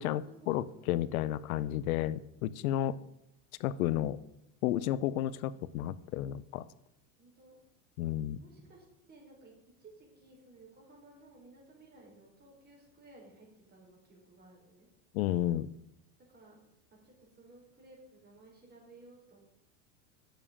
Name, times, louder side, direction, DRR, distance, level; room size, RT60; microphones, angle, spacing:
voice 1, 0.0-3.0 3.6-4.2 4.6-6.7 8.0-8.4 15.1-15.7, left 13 dB, 85° left, 17 dB, 0.7 m, -32 dB
voice 2, 7.2-7.6 8.3-9.5 9.8-14.9 16.3-16.6 17.0-19.4, right 2 dB, 25° right, -2 dB, 5.0 m, -57 dB
7.6 x 7.4 x 8.4 m, 0.86 s
supercardioid pair, 120°, 41 cm